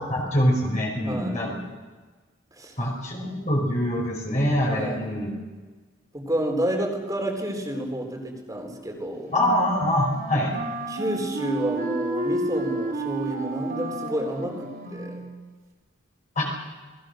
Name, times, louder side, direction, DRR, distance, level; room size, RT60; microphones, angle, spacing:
voice 1, 0.0-1.6 2.8-5.3 9.3-10.5 16.3-16.4, left 1 dB, 35° left, -2 dB, 4.9 m, -24 dB
voice 2, 1.0-1.5 2.6-2.8 4.7-5.2 6.1-9.3 10.9-15.2, equal, 15° right, 2 dB, 4.0 m, -30 dB
Wind instrument woodwind instrument, 9.3-15.5, right 2 dB, 45° right, 4.0 m, -31 dB
28.5 x 20.0 x 6.5 m, 1.4 s
head